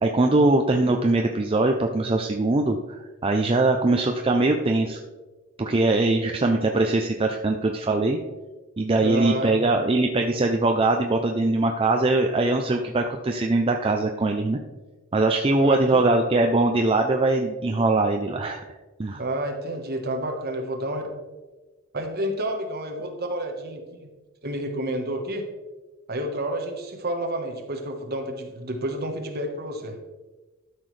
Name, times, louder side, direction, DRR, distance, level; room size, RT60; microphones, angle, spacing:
voice 1, 0.0-2.8 3.2-5.0 5.6-8.2 8.8-14.6 15.1-18.6 19.0-19.2, right 2 dB, 25° right, 3 dB, 0.5 m, -22 dB
voice 2, 9.0-9.8 15.6-16.0 19.1-21.1 21.9-24.1 24.4-25.5 26.1-30.0, right 1 dB, 45° right, 3 dB, 1.3 m, -30 dB
12.5 x 6.1 x 3.3 m, 1.2 s
head